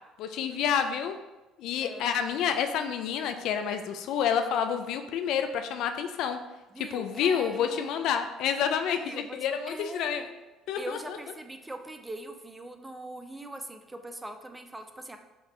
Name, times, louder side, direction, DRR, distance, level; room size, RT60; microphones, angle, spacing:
voice 1, 0.2-1.2 1.6-6.4 6.8-10.3 10.7-11.2, left 8 dB, 65° left, 8 dB, 0.3 m, -29 dB
voice 2, 6.7-8.1 9.0-10.3 10.8-15.2, right 2 dB, 15° right, 6 dB, 0.5 m, -42 dB
5.9 x 2.5 x 3.1 m, 1.1 s
hypercardioid pair, 60°, 0 cm